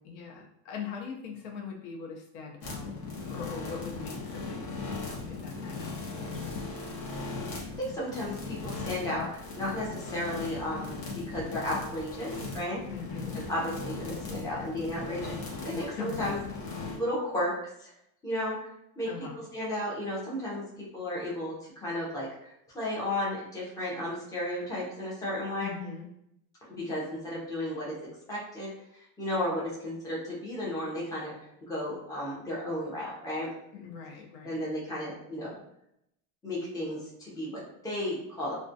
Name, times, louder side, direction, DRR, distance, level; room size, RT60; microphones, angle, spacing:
voice 1, 0.0-2.9 3.3-6.6 12.9-13.3 15.7-16.4 19.0-19.4 25.6-26.1 33.7-34.6, left 6 dB, 80° left, 1 dB, 0.7 m, -41 dB
sound 1, 2.6-17.0, left 3 dB, 50° left, 0.8 m, -38 dB
voice 2, 7.5-12.8 13.5-15.3 15.6-16.4 16.9-17.5 17.8-17.9 18.2-18.6 19.0-19.1 19.5-25.7 26.8-28.0 28.3-28.7 29.2-31.3 31.7-33.5 34.4-35.5 36.4-38.5, left 1 dB, 10° left, -6 dB, 0.5 m, -34 dB
2.3 x 2.2 x 2.6 m, 0.78 s
cardioid pair, 155°, 44 cm